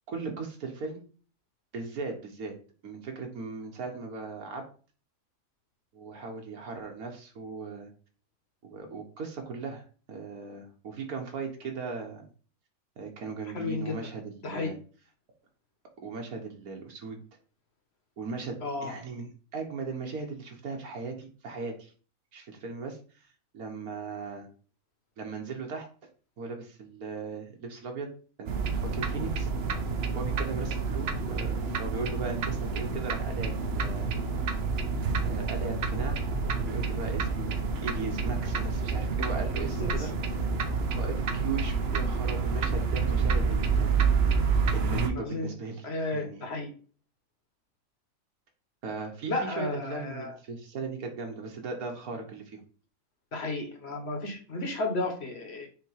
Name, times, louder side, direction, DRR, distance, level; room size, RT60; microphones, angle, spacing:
voice 1, 0.1-1.0 1.7-2.6 2.8-4.6 5.9-7.9 8.6-12.2 13.0-14.8 16.0-17.2 18.2-21.9 22.3-23.0 23.5-24.5 25.2-25.9 26.4-28.1 28.4-29.5 30.1-34.1 35.2-36.3 36.6-37.6 37.8-40.1 40.4-40.5 40.9-44.0 44.7-45.9 46.1-46.5 48.8-52.6, right 4 dB, 80° right, 2 dB, 1.7 m, -38 dB
voice 2, 13.5-14.0 14.4-14.7 18.6-18.9 39.6-40.1 45.2-45.5 45.8-46.7 49.3-50.3 53.3-55.7, left 2 dB, 50° left, 4 dB, 1.4 m, -33 dB
sound 1, 28.5-45.1, right 4 dB, 55° right, 0.8 m, -28 dB
6.8 x 2.9 x 4.7 m, 0.39 s
omnidirectional pair, 1.5 m